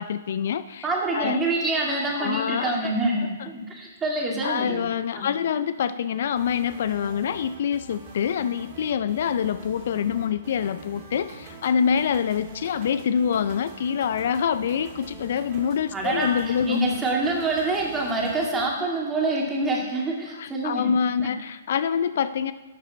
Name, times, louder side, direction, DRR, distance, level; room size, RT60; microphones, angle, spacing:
voice 1, 0.0-0.9 1.1-1.4 2.2-2.9 3.4-3.5 4.4-16.8 18.5-18.7 20.4-22.5, left 7 dB, 60° left, 14 dB, 0.3 m, -26 dB
voice 2, 0.8-4.9 5.2-5.3 15.9-20.9 21.2-21.3, right 2 dB, 15° right, -2 dB, 2.2 m, -26 dB
sound 1, 6.2-18.7, right 3 dB, 40° right, 2.3 m, -44 dB
11.5 x 6.8 x 4.2 m, 1.2 s
hypercardioid pair, 125°, 0 cm